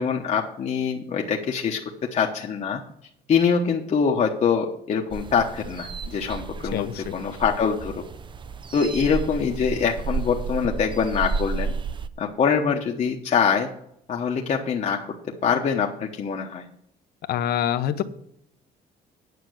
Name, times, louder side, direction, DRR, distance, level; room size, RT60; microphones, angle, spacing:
voice 1, 0.0-1.8 2.1-2.8 3.3-7.9 8.7-11.7 12.2-13.7 14.1-15.1 15.4-16.7, left 6 dB, 45° left, 0 dB, 1.1 m, -24 dB
sound 1, 5.1-12.1, right 4 dB, 30° right, 0.5 m, -32 dB
voice 2, 6.7-7.1 17.3-18.0, left 10 dB, 65° left, 11 dB, 0.9 m, -25 dB
9.5 x 5.8 x 7.9 m, 0.72 s
cardioid pair, 110°, 17 cm